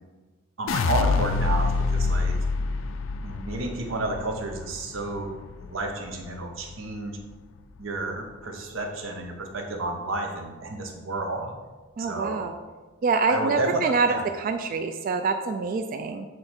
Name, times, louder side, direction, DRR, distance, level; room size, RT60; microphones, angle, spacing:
voice 1, 0.6-2.4 3.2-5.3 5.6-7.2 7.8-11.5 12.0-12.5 13.3-13.8 14.1-14.2, right 2 dB, 80° right, 2 dB, 0.9 m, -31 dB
sound 1, 0.7-6.9 7.2-7.8, left 4 dB, 70° left, 0.4 m, -27 dB
voice 2, 12.0-12.5 13.0-16.3, right 4 dB, 45° right, 7 dB, 0.3 m, -26 dB
7.6 x 3.2 x 4.4 m, 1.3 s
head